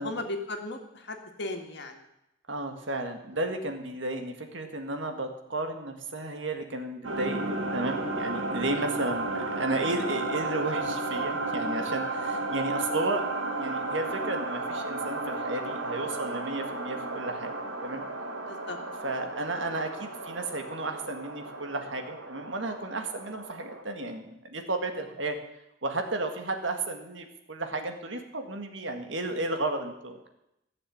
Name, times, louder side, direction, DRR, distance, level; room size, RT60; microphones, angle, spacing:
voice 1, 0.0-2.0 8.6-8.7 18.4-18.8, left 2 dB, 60° left, 4 dB, 1.9 m, -36 dB
voice 2, 2.5-13.3 13.6-17.5 17.8-18.0 19.0-25.4 25.8-30.3, right 2 dB, 65° right, 5 dB, 1.8 m, -33 dB
sound 1, 7.0-23.8, right 2 dB, 90° right, 1.8 m, -33 dB
15.0 x 6.9 x 8.7 m, 0.84 s
head